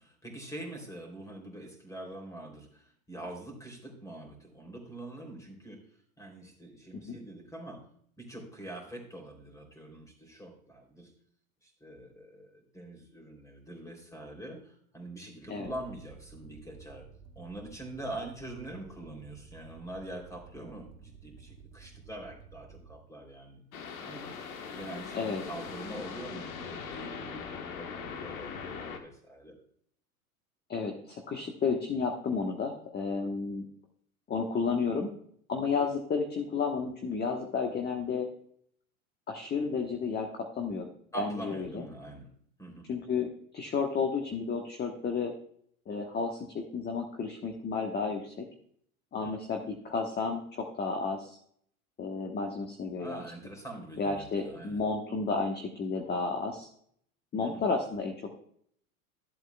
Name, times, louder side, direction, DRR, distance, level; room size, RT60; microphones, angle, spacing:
voice 1, 0.0-5.8 6.2-7.8 8.2-11.1 11.6-17.0 17.3-24.3 24.7-27.4 27.8-29.6 41.1-42.3 42.6-42.9 49.2-49.4 53.0-54.8 57.4-57.6, right 1 dB, 5° left, 2 dB, 3.2 m, -44 dB
sound 1, 15.6-22.9, right 6 dB, 35° right, 1.5 m, -53 dB
sound 2, 23.7-29.0, left 6 dB, 70° left, 1.4 m, -41 dB
voice 2, 30.7-33.6 34.3-35.1 35.5-38.3 39.3-40.9 41.2-41.8 42.9-43.3 43.5-45.3 45.9-48.5 49.1-51.4 52.0-53.2 54.0-56.7 57.3-58.3, left 4 dB, 20° left, 3 dB, 1.2 m, -32 dB
14.5 x 7.9 x 2.3 m, 0.64 s
hypercardioid pair, 95°, 43 cm